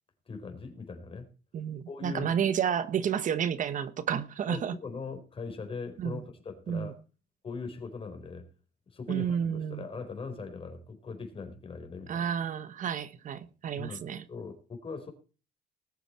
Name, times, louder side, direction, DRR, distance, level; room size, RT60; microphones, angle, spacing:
voice 1, 0.3-1.3 1.9-2.4 4.5-7.0 7.4-8.5 8.9-12.3 13.8-14.0 14.3-15.1, left 4 dB, 30° left, 4.4 m, -40 dB
voice 2, 1.5-4.8 6.0-6.2 6.7-6.9 9.1-9.8 12.1-14.2, right 8 dB, 50° right, 1.1 m, -31 dB
20.0 x 8.1 x 4.3 m
cardioid pair, 110°, 17 cm